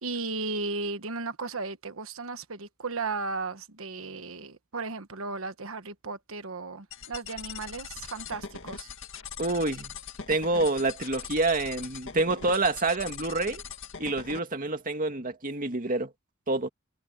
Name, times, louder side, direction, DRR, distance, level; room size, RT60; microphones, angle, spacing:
voice 1, 0.0-8.9, right 3 dB, 75° right, 1.3 m, -35 dB
sound 1, 6.9-14.4, left 6 dB, 65° left, 2.1 m, -41 dB
voice 2, 9.4-9.9 10.3-13.6 14.0-16.1 16.5-16.7, right 2 dB, 40° right, 2.4 m, -27 dB
head